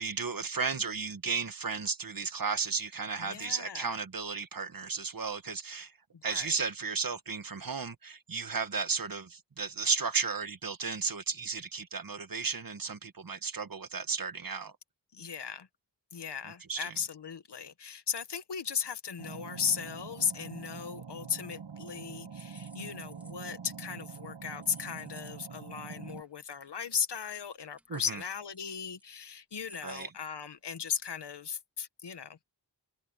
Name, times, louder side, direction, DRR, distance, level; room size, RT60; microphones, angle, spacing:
voice 1, 0.0-5.9 6.2-14.7 16.7-16.9 27.9-28.2 29.8-30.1, right 5 dB, 50° right, 1.6 m, -34 dB
voice 2, 3.2-3.9 6.1-6.6 15.1-15.7 16.1-32.4, left 7 dB, 70° left, 1.3 m, -37 dB
sound 1, 19.2-26.2, right 6 dB, 85° right, 2.1 m, -45 dB
sound 2, 21.4-21.9 22.1-23.5 23.9-24.3 24.6-25.3 25.6-25.7 26.1-26.2 26.5-26.8 27.1-29.2 29.6-30.1 30.5-30.7 30.9-31.0, equal, 5° right, 1.9 m, -56 dB
wide cardioid pair, 100°, 43 cm